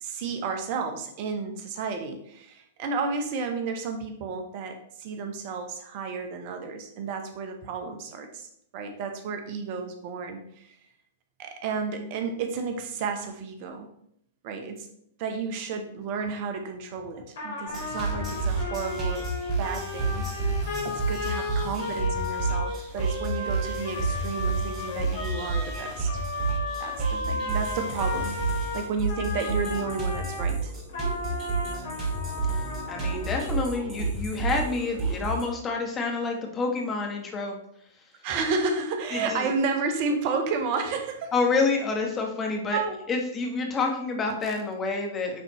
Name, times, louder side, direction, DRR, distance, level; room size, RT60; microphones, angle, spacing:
voice 1, 0.0-10.8 11.4-13.9 14.4-14.9 15.2-19.3 19.6-20.2 20.8-26.1 26.8-28.4 28.7-30.7 38.2-41.3 42.7-43.0, right 4 dB, 50° right, 5 dB, 1.0 m, -32 dB
Trumpet, 17.4-30.4 30.9-33.4, left 3 dB, 65° left, 2.7 m, -34 dB
sound 1, 17.7-35.4, right 3 dB, 30° right, 2.4 m, -30 dB
voice 2, 32.4-37.6 39.1-39.5 41.3-42.8 43.1-45.4, left 3 dB, 20° left, 2 dB, 1.5 m, -28 dB
9.2 x 4.0 x 3.1 m, 0.71 s
figure-of-eight pair, 105°, 0 cm